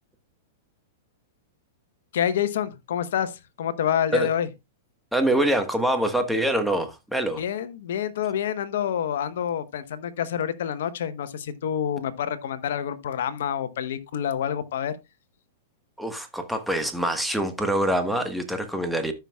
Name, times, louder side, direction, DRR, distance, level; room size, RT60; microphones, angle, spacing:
voice 1, 2.1-4.5 7.4-14.9, left 9 dB, 70° left, 1.0 m, -27 dB
voice 2, 5.1-7.4 16.0-19.1, right 1 dB, ahead, 1.4 m, -25 dB
14.0 x 5.8 x 2.3 m
hypercardioid pair, 125°, 0 cm